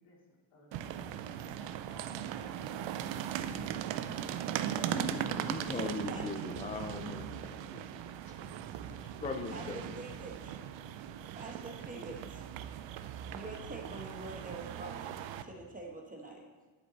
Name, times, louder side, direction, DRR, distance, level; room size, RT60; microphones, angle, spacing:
voice 1, 0.0-2.9 3.3-3.9, left 2 dB, 80° left, -2 dB, 2.8 m, -57 dB
sound 1, 0.7-15.4, right 10 dB, 65° right, 0.6 m, -39 dB
sound 2, 3.4-14.2, left 3 dB, 40° left, 1.5 m, -60 dB
voice 2, 4.9-10.0, left 4 dB, 15° left, 5 dB, 0.4 m, -41 dB
voice 3, 9.5-10.6 11.3-12.5 13.3-16.4, right 2 dB, 15° right, 0 dB, 1.1 m, -46 dB
11.0 x 6.7 x 4.1 m, 1.3 s
cardioid pair, 165°, 48 cm